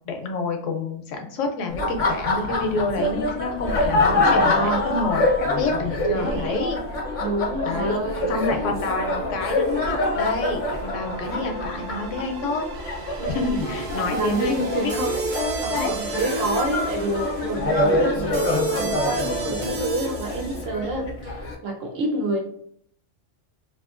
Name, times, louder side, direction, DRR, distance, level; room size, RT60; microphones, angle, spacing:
voice 1, 0.1-6.8 7.6-8.0 8.3-12.6 13.3-15.1 15.3-15.9, left 3 dB, 80° left, 5 dB, 0.9 m, -28 dB
Laughter, 1.7-21.5, left 2 dB, 50° left, 0.6 m, -26 dB
voice 2, 4.3-4.8 6.1-6.6 7.2-8.4 13.2-13.6 14.1-15.2 15.6-22.4, right 2 dB, 90° right, 0 dB, 1.1 m, -28 dB
sound 1, 5.2-20.6, right 2 dB, 50° right, 0.6 m, -34 dB
2.8 x 2.6 x 2.4 m, 0.65 s
omnidirectional pair, 1.3 m